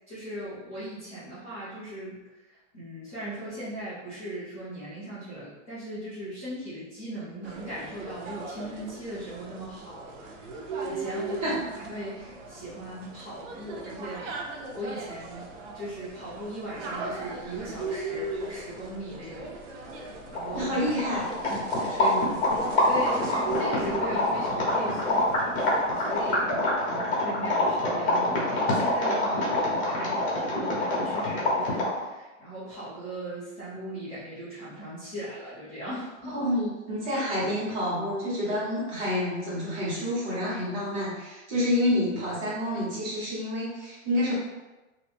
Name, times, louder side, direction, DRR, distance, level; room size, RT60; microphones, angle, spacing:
voice 1, 0.1-14.3 14.7-15.5 15.7-20.7 21.5-22.1 22.6-25.4 25.7-26.5 26.8-36.5, right 1 dB, 10° left, -15 dB, 0.3 m, -39 dB
sound 1, 7.4-26.7, right 3 dB, 70° right, 0.7 m, -39 dB
sound 2, 20.0-20.1 20.3-32.0, left 1 dB, 45° left, 1.2 m, -26 dB
voice 2, 20.5-21.3 22.0-22.3 36.3-44.3, left 1 dB, 35° right, -8 dB, 1.4 m, -28 dB
2.7 x 2.5 x 3.4 m, 1.1 s
supercardioid pair, 170°, 38 cm